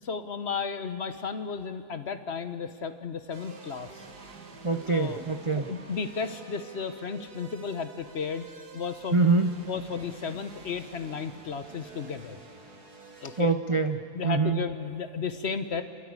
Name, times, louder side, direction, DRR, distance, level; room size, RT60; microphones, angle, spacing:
voice 1, 0.0-4.0 4.9-5.3 5.5-8.5 8.7-9.2 9.7-12.4 13.2-13.5 14.1-15.8, left 5 dB, 50° left, 10 dB, 1.1 m, -33 dB
sound 1, 3.3-13.4, right 4 dB, 80° right, 2.3 m, -48 dB
voice 2, 4.6-5.7 9.1-9.7 13.4-14.6, right 3 dB, 50° right, 8 dB, 0.3 m, -25 dB
29.5 x 13.0 x 9.7 m, 2.3 s
omnidirectional pair, 1.7 m